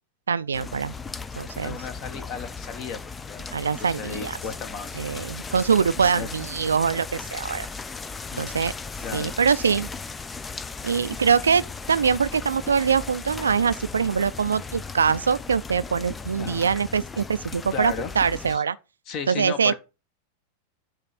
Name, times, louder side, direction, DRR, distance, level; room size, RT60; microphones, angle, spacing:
voice 1, 0.3-0.9 1.4-1.8 3.5-4.4 5.0-7.7 8.4-8.7 9.1-9.9 10.8-18.8 19.3-19.7, right 6 dB, 70° right, 0.4 m, -23 dB
sound 1, 0.5-18.6, left 4 dB, 15° left, 0.4 m, -37 dB
voice 2, 1.6-3.0 3.3-3.5 3.8-5.0 6.1-6.5 8.3-8.7 9.0-9.3 16.4-16.7 17.7-18.1 18.5-18.6 19.1-19.7, left 6 dB, 40° left, 1.1 m, -35 dB
8.9 x 3.2 x 5.9 m
figure-of-eight pair, 90°, 0 cm